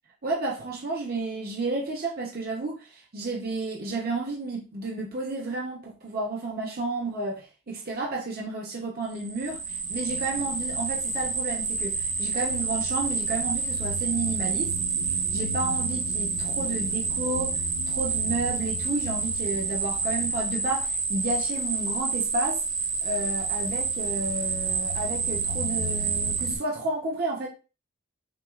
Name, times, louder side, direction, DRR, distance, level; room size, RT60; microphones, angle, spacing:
voice 1, 0.2-14.8 15.3-17.6 17.9-22.6 23.0-27.5, right 2 dB, 45° right, 0.8 m, -31 dB
sound 1, 9.2-26.6, right 4 dB, 75° right, 1.0 m, -28 dB
6.0 x 2.4 x 2.4 m
head